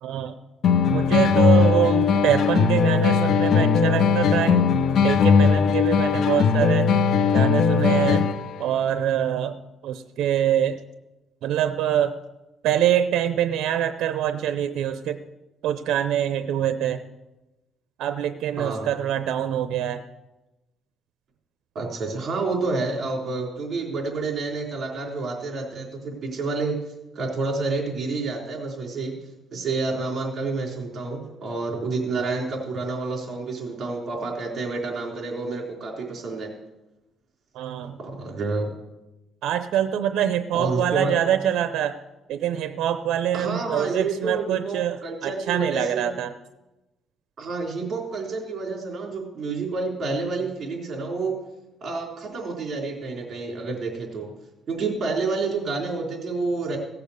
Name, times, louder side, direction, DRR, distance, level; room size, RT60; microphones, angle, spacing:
voice 1, 0.0-0.3 0.9-4.7 5.0-6.9 7.3-8.3 8.6-9.6 9.8-10.8 11.4-12.2 12.6-15.3 15.6-17.0 18.0-20.0 37.5-38.0 39.4-42.0 42.3-46.3, right 10 dB, 75° right, 10 dB, 0.6 m, -24 dB
sound 1, 0.6-8.6, left 6 dB, 60° left, 0.7 m, -19 dB
voice 2, 18.6-18.9 21.7-26.8 27.1-29.1 29.5-36.5 38.0-38.7 40.5-41.1 43.3-46.1 47.4-51.3 51.8-54.3 54.7-56.8, right 3 dB, 45° right, 0 dB, 4.0 m, -29 dB
16.5 x 6.9 x 6.7 m, 1.0 s
cardioid pair, 115°, 0 cm